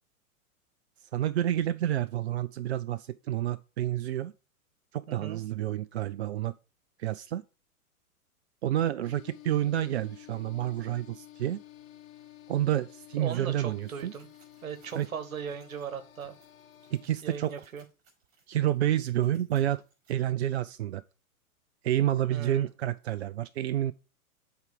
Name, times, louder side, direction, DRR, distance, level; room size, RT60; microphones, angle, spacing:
voice 1, 1.1-4.3 4.9-6.5 7.0-7.4 8.6-11.6 12.5-14.1 14.9-15.1 16.9-17.5 18.5-19.8 20.1-21.0 21.8-23.9, right 12 dB, 50° right, 0.4 m, -29 dB
voice 2, 5.1-5.4 13.2-14.3 14.6-16.3 17.2-17.8 22.3-22.7, right 7 dB, 65° right, 1.4 m, -38 dB
sound 1, 9.0-17.1, left 13 dB, 65° left, 0.9 m, -52 dB
sound 2, 13.8-20.1, right 4 dB, 30° right, 5.1 m, -66 dB
8.0 x 4.6 x 5.0 m
figure-of-eight pair, 105°, 44 cm